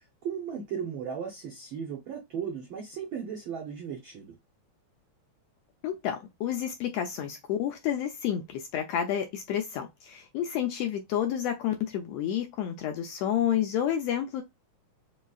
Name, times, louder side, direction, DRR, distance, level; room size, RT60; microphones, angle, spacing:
voice 1, 0.2-4.4, right 7 dB, 85° right, 1.1 m, -36 dB
voice 2, 5.8-14.4, left 10 dB, 80° left, 1.5 m, -30 dB
5.0 x 2.3 x 2.3 m
omnidirectional pair, 3.3 m